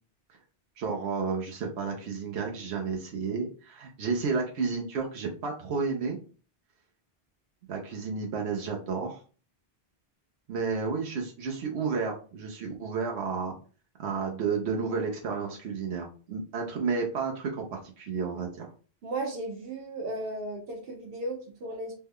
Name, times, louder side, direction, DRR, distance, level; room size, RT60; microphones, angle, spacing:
voice 1, 0.8-6.2 7.7-9.2 10.5-13.5 14.0-18.7, right 5 dB, 90° right, 1 dB, 0.9 m, -31 dB
voice 2, 19.0-21.9, right 2 dB, 65° right, 1 dB, 1.1 m, -35 dB
3.3 x 2.2 x 3.5 m, 0.38 s
omnidirectional pair, 1.1 m